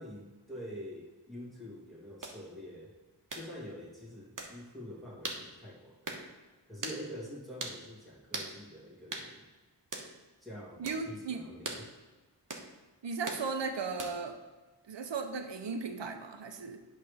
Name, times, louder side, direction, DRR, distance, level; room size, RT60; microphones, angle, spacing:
voice 1, 0.0-2.9 3.3-6.2 6.7-9.5 10.4-11.9, equal, ahead, -5 dB, 2.1 m, -46 dB
sound 1, 2.2-2.4 3.3-3.5 4.4-4.5 5.2-5.4 6.1-6.2 6.8-7.0 7.6-7.8 8.3-8.5 9.1-9.3 9.9-10.1 10.9-11.0 11.6-11.8 12.5-12.7 13.3-13.4 14.0-14.3, right 2 dB, 45° right, 1.2 m, -39 dB
voice 2, 10.8-11.4 13.0-14.4 14.9-16.8, right 4 dB, 75° right, 6 dB, 0.8 m, -36 dB
8.4 x 3.3 x 6.4 m, 1.2 s
wide cardioid pair, 80°, 43 cm